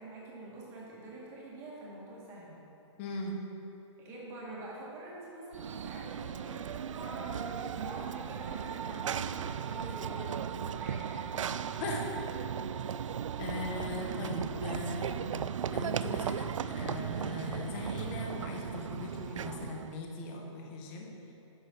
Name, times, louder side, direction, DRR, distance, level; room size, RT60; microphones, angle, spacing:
voice 1, 0.0-2.6 4.0-11.7, right 2 dB, 15° right, -5 dB, 1.8 m, -45 dB
voice 2, 3.0-3.4 11.8-12.0 13.4-15.2 15.7-21.1, left 3 dB, 20° left, 0 dB, 1.1 m, -39 dB
Run / Train, 5.5-20.0, right 8 dB, 80° right, 0.4 m, -36 dB
11.0 x 7.3 x 4.5 m, 2.9 s
hypercardioid pair, 165°, 16 cm